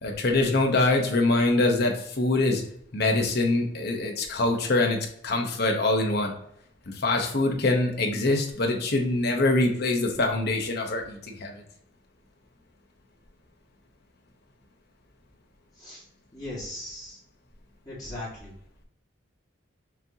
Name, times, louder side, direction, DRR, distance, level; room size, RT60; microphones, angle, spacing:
voice 1, 0.0-2.6 2.9-5.0 5.2-6.3 6.9-11.6, left 2 dB, 55° left, 2 dB, 0.9 m, -24 dB
voice 2, 16.3-17.2 17.8-18.5, left 1 dB, 20° left, -8 dB, 1.6 m, -38 dB
5.9 x 2.9 x 2.8 m, 0.71 s
head